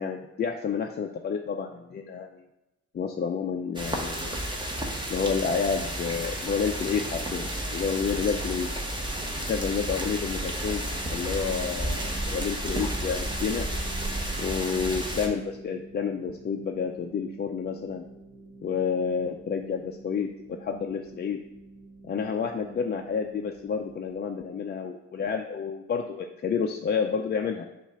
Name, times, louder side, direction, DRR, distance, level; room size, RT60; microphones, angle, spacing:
voice 1, 0.0-2.3 2.9-4.4 5.1-8.7 9.4-10.8 11.1-13.7 14.4-18.1 18.6-21.4 22.0-27.7, left 6 dB, 35° left, 2 dB, 0.4 m, -30 dB
sound 1, 3.8-15.3, right 1 dB, 15° right, 1.0 m, -32 dB
sound 2, 6.6-24.2, right 1 dB, 15° left, 0.8 m, -47 dB
7.0 x 2.5 x 5.5 m, 0.94 s
cardioid pair, 90°, 30 cm